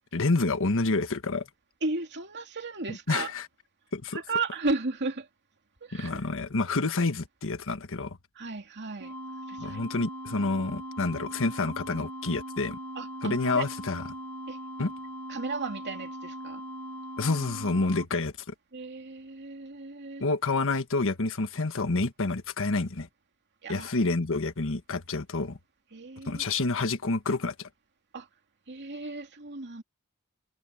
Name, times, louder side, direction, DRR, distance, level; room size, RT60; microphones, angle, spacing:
voice 1, 0.1-1.5 2.9-3.5 3.9-4.2 5.9-8.2 9.6-12.8 13.2-14.1 14.8-14.9 17.2-18.5 20.2-23.1 23.7-25.6 26.2-27.7, left 3 dB, 65° left, 1.5 m, -28 dB
voice 2, 1.8-3.3 4.1-5.3 5.8-6.2 8.4-9.1 9.5-9.8 13.0-13.7 14.5-14.6 15.3-16.6 18.7-20.2 23.6-23.9 25.9-26.4 28.1-28.3 28.7-29.8, right 3 dB, 50° right, 2.7 m, -34 dB
sound 1, 9.0-18.1, equal, 85° right, 2.4 m, -40 dB
head